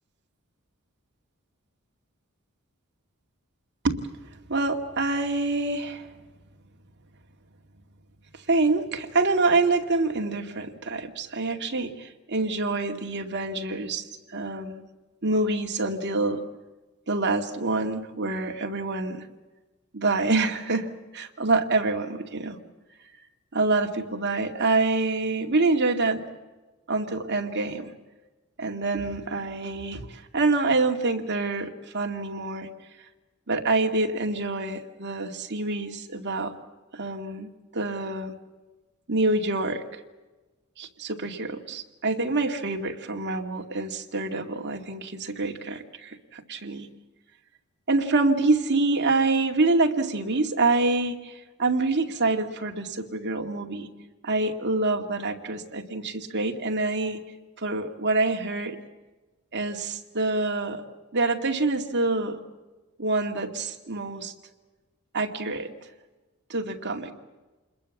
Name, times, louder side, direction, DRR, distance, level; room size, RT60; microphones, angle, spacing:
voice 1, 4.5-6.1 8.3-14.9 15.2-16.4 17.1-19.3 19.9-22.6 23.5-26.2 26.9-27.9 28.6-32.7 33.5-36.5 36.9-38.3 39.1-40.0 40.8-46.9 47.9-53.9 54.2-57.2 57.6-58.8 59.5-60.8 61.1-62.4 63.0-64.3 65.1-65.7 66.5-67.1, right 3 dB, 55° right, 4 dB, 2.3 m, -26 dB
28.0 x 21.5 x 7.3 m, 1.2 s
head